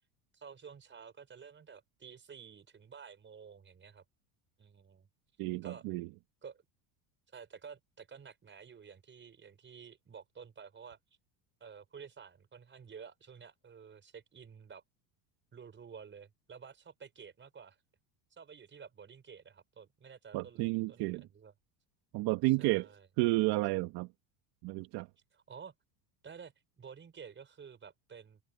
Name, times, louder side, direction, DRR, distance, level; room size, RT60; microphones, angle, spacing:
voice 1, 0.3-4.0 4.6-5.1 5.6-5.9 6.4-6.6 7.3-11.0 11.6-14.8 15.5-17.8 18.3-20.6 20.9-21.5 22.5-23.1 25.3-25.7 26.2-28.4, right 6 dB, 25° right, 5.3 m, -51 dB
voice 2, 5.4-6.1 20.3-21.3 22.1-22.9 23.2-24.1 24.6-25.1, right 21 dB, 60° right, 1.5 m, -31 dB
supercardioid pair, 105°, 42 cm